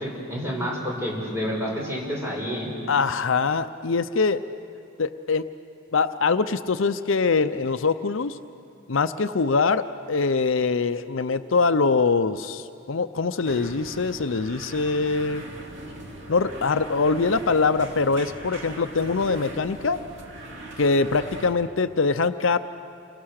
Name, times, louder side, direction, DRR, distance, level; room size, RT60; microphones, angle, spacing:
voice 1, 0.0-2.7, equal, 15° right, -3 dB, 6.6 m, -29 dB
voice 2, 2.9-4.4 5.0-5.5 5.9-8.4 8.9-15.4 16.3-20.0 20.8-22.6, left 4 dB, 70° left, 11 dB, 0.6 m, -23 dB
sound 1, 13.4-21.5, right 1 dB, 55° right, 2.8 m, -40 dB
29.0 x 23.5 x 6.6 m, 2.7 s
head